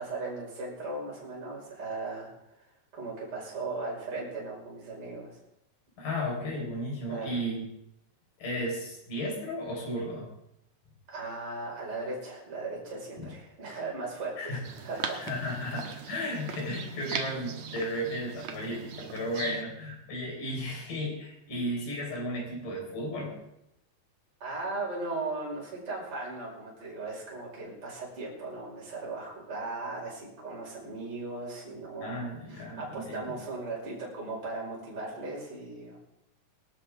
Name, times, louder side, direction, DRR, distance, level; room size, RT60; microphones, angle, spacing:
voice 1, 0.0-5.4 7.1-7.4 11.1-15.2 24.4-32.2 32.5-36.0, right 3 dB, 40° right, -4 dB, 6.0 m, -37 dB
voice 2, 6.0-7.6 8.4-10.3 13.2-13.3 14.4-14.6 15.2-23.3 32.0-33.3, equal, 75° left, -2 dB, 6.4 m, -34 dB
sound 1, 14.6-19.6, right 7 dB, 65° right, 2.3 m, -39 dB
22.0 x 12.5 x 3.7 m, 0.83 s
omnidirectional pair, 3.9 m